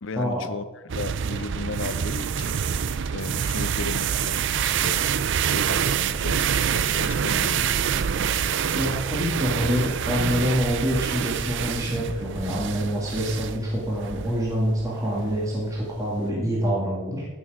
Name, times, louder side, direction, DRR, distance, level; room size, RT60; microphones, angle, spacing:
voice 1, 0.0-2.6 3.1-5.1 5.5-6.5 6.7-8.1, left 3 dB, 65° left, 12 dB, 0.7 m, -35 dB
sound 1, 0.9-16.3, right 8 dB, 60° right, 0.4 m, -26 dB
voice 2, 8.8-17.3, equal, 15° right, -4 dB, 2.0 m, -26 dB
15.5 x 6.3 x 4.9 m, 1.2 s
head